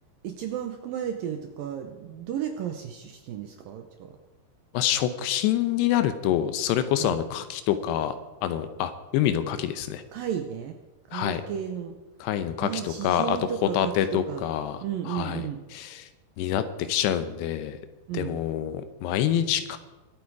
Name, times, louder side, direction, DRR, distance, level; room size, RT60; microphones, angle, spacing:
voice 1, 0.2-4.2 7.0-7.2 10.1-10.7 11.1-12.0 12.6-14.4 14.8-15.6 18.1-18.4, right 9 dB, 75° right, 5 dB, 2.2 m, -33 dB
voice 2, 4.7-8.2 8.4-10.0 11.1-11.4 12.2-13.4 13.7-15.4 15.7-16.1 16.4-17.8 18.1-19.8, left 10 dB, 80° left, 10 dB, 2.8 m, -26 dB
23.0 x 8.6 x 4.8 m, 1.1 s
omnidirectional pair, 5.0 m